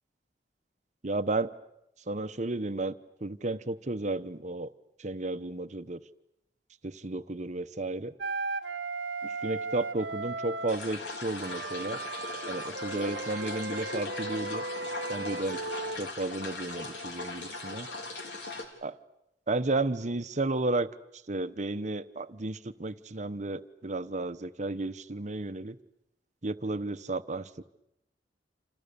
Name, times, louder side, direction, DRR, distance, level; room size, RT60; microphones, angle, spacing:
voice 1, 1.0-1.5 2.1-2.9 3.2-4.7 5.0-6.0 6.8-8.1 9.2-12.0 12.5-14.6 15.1-15.6 16.0-17.9 18.8-19.0 19.5-20.9 21.3-25.8 26.4-27.6, right 2 dB, 40° right, 12 dB, 1.0 m, -33 dB
Wind instrument woodwind instrument, 8.2-10.8 11.4-16.0, right 3 dB, 80° right, 1.2 m, -36 dB
sound 1, 10.7-18.7, left 2 dB, 85° left, 3.8 m, -39 dB
29.5 x 27.5 x 6.9 m, 0.84 s
head